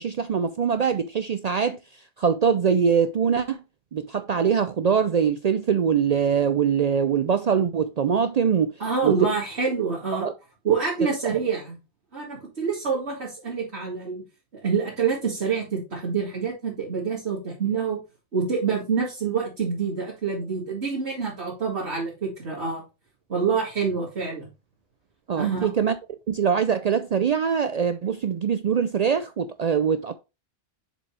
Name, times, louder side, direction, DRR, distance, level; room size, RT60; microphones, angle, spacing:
voice 1, 0.0-1.8 2.2-3.6 3.9-8.7 9.0-9.1 10.1-10.3 11.3-11.4 25.3-25.9 26.3-30.1, right 7 dB, 55° right, 0.4 m, -23 dB
voice 2, 8.8-10.3 10.6-11.7 12.1-14.2 14.6-18.0 18.3-22.8 23.3-24.5 25.4-25.7, right 5 dB, 75° right, 2.7 m, -26 dB
7.0 x 5.2 x 3.2 m
omnidirectional pair, 1.1 m